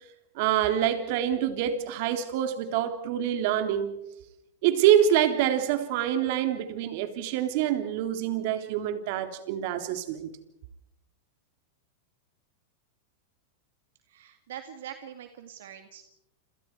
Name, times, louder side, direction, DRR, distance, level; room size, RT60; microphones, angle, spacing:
voice 1, 0.3-4.0 4.6-10.3, right 10 dB, 60° right, 3.4 m, -26 dB
voice 2, 14.1-16.0, right 10 dB, 80° right, 2.2 m, -43 dB
29.0 x 27.5 x 4.7 m
supercardioid pair, 130°, 0 cm